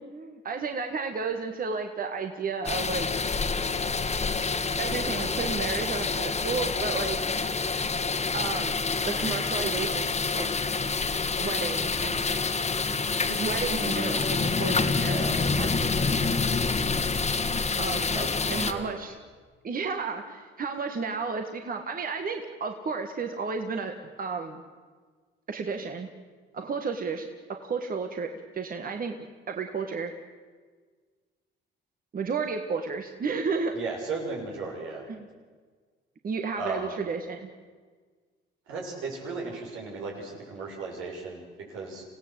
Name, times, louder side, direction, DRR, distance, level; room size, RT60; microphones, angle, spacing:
voice 1, 0.0-3.1 4.8-7.2 8.3-8.8 9.0-10.5 11.4-12.4 13.3-15.9 17.8-18.2 18.5-19.2 19.6-24.6 25.5-26.1 26.5-27.3 27.6-30.1 32.1-33.8 35.1-35.3 36.2-37.5, right 5 dB, 45° right, 5 dB, 1.8 m, -32 dB
sound 1, 2.6-18.7, left 4 dB, 35° left, 1.7 m, -27 dB
voice 2, 14.9-15.4 18.0-18.9 33.7-35.0 36.6-36.9 38.7-41.4 41.7-42.0, right 3 dB, 90° right, -1 dB, 6.6 m, -36 dB
26.0 x 16.5 x 8.1 m, 1.5 s
cardioid pair, 90°, 20 cm